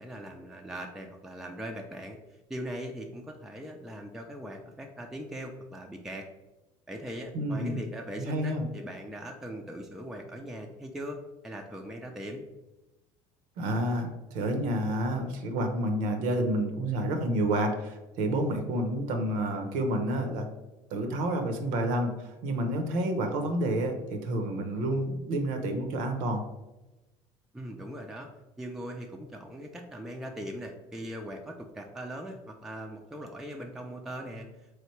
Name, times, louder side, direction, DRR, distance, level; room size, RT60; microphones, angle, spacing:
voice 1, 0.0-2.2 2.5-6.3 6.9-12.5 27.5-28.3 28.6-34.7, equal, 5° right, 2 dB, 0.4 m, -40 dB
voice 2, 7.3-7.8 8.2-8.6 13.6-20.5 20.9-26.4, right 1 dB, 70° right, 5 dB, 0.7 m, -29 dB
3.8 x 3.2 x 3.0 m, 1.0 s
supercardioid pair, 90°, 14 cm